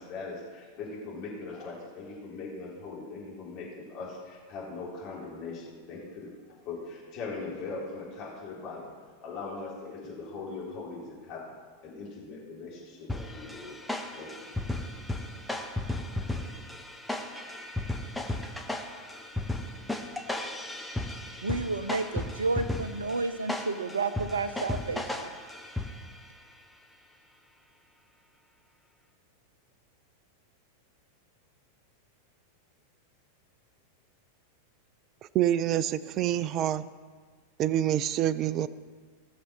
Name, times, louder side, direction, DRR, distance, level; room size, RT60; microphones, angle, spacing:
voice 1, 0.0-6.3 6.6-8.9 9.2-11.5 11.8-13.7 14.1-14.5, left 3 dB, 40° left, 3.9 m, -40 dB
sound 1, 13.1-26.3, left 2 dB, 5° left, 1.0 m, -35 dB
voice 2, 21.4-25.3, right 3 dB, 70° right, 0.7 m, -31 dB
voice 3, 35.3-36.9 37.6-38.7, right 11 dB, 35° right, 0.4 m, -26 dB
17.0 x 6.7 x 6.1 m
figure-of-eight pair, 90°, 0 cm